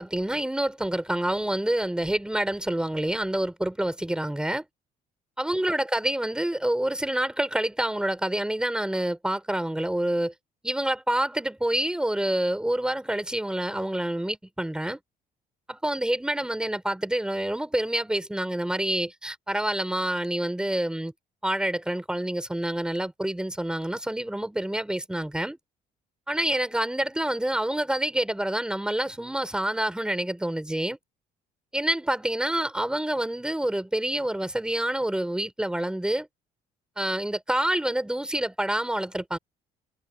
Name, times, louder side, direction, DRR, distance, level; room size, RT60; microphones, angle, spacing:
voice 1, 0.0-4.6 5.4-10.3 10.6-15.0 15.7-21.1 21.4-25.6 26.3-31.0 31.7-36.3 37.0-39.4, right 1 dB, 5° right, 4.1 m, -27 dB
cardioid pair, 130°, 16 cm